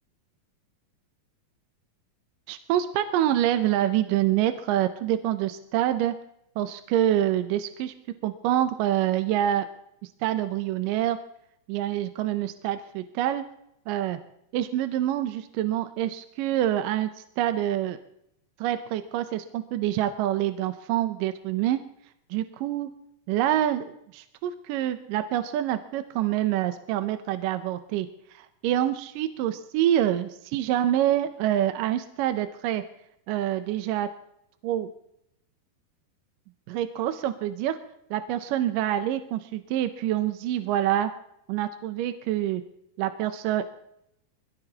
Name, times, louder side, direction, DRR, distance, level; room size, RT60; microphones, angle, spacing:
voice 1, 2.5-6.1 6.6-7.9 8.2-9.7 10.2-11.2 11.7-13.4 13.9-14.2 14.5-17.1 17.4-18.0 18.6-21.8 22.3-22.9 23.3-28.1 28.3-32.8 33.3-34.1 34.6-34.9 36.7-37.8 38.1-41.1 41.5-42.6 43.0-43.7, right 12 dB, 75° right, 9 dB, 2.2 m, -26 dB
24.5 x 16.5 x 2.9 m, 0.78 s
omnidirectional pair, 4.2 m